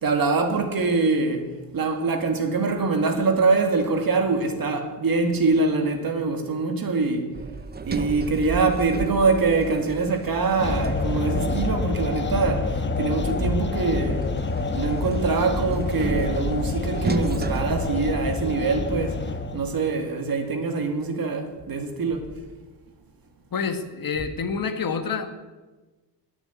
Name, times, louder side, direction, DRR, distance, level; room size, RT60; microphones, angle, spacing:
voice 1, 0.0-7.3 7.9-14.3 14.7-19.2 19.5-22.3, right 3 dB, 55° right, 2.3 m, -24 dB
Sliding door, 7.3-12.2 13.8-18.7, right 4 dB, 25° right, 0.6 m, -33 dB
sound 1, 10.6-19.8, left 3 dB, 25° left, 1.3 m, -27 dB
voice 2, 23.5-25.3, left 5 dB, 50° left, 1.6 m, -28 dB
19.5 x 7.0 x 9.5 m
wide cardioid pair, 125°, 43 cm